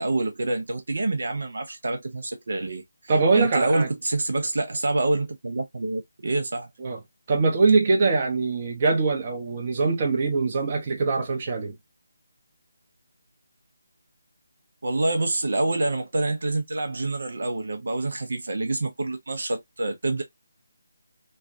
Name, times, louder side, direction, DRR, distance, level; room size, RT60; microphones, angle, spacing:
voice 1, 0.0-2.8 3.3-6.7 14.8-20.2, right 2 dB, 65° right, 0.8 m, -26 dB
voice 2, 3.1-3.9 6.8-7.0 7.3-11.7, right 3 dB, 35° right, 0.9 m, -22 dB
3.3 x 2.3 x 2.5 m
figure-of-eight pair, 160°, 0 cm